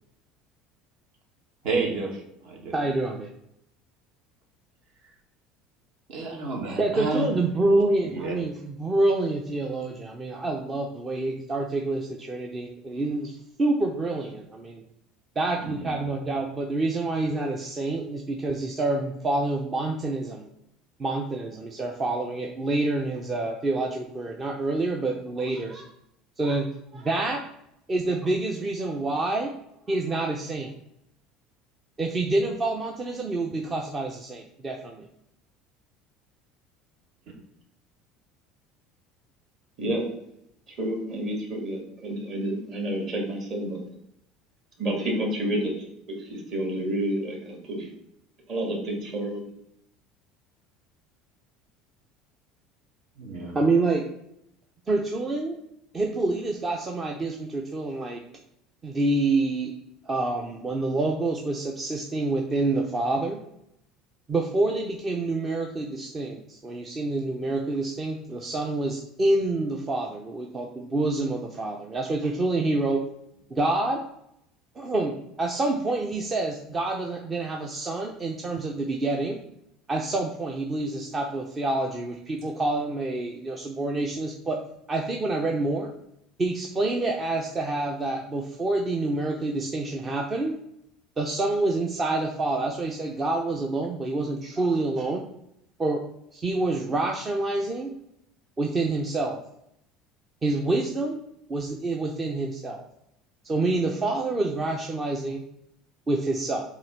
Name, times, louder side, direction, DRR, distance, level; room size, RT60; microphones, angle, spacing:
voice 1, 1.6-2.8 6.1-7.3 8.0-8.4 15.6-16.0 53.2-53.5, right 3 dB, 55° right, 1 dB, 1.8 m, -31 dB
voice 2, 2.7-3.3 6.8-14.8 15.4-20.5 21.0-25.9 26.4-26.7 26.9-27.4 27.9-29.5 29.9-30.7 32.0-35.1 53.5-54.0 54.9-55.6 55.9-58.2 58.8-59.7 60.1-63.4 64.3-73.0 73.5-74.0 74.8-79.4 79.9-84.6 84.9-85.9 86.4-90.5 91.2-95.2 95.8-96.0 96.3-97.9 98.6-99.4 100.4-101.2 101.5-102.8 103.4-105.4 106.1-106.6, right 2 dB, 20° right, 2 dB, 0.6 m, -27 dB
voice 3, 39.8-40.1 40.7-43.8 44.8-45.7 46.1-47.9 48.5-49.4, right 1 dB, 35° right, -1 dB, 2.2 m, -29 dB
7.5 x 3.0 x 5.8 m, 0.77 s
cardioid pair, 165°, 0 cm